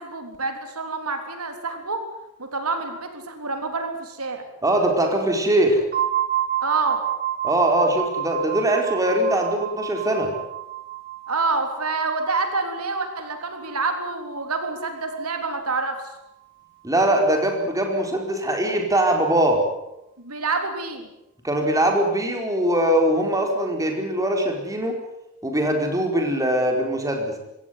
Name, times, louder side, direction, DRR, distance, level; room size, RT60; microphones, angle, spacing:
voice 1, 0.0-2.1 2.4-4.4 6.6-7.0 11.3-16.0 20.2-21.1, right 3 dB, 75° right, 6 dB, 3.6 m, -27 dB
voice 2, 4.6-5.8 7.4-10.3 16.8-19.6 21.4-24.9 25.4-27.3, right 1 dB, 15° right, 3 dB, 4.8 m, -21 dB
sound 1, 5.9-15.6, right 11 dB, 45° right, 2.3 m, -30 dB
24.5 x 17.5 x 9.7 m, 0.88 s
head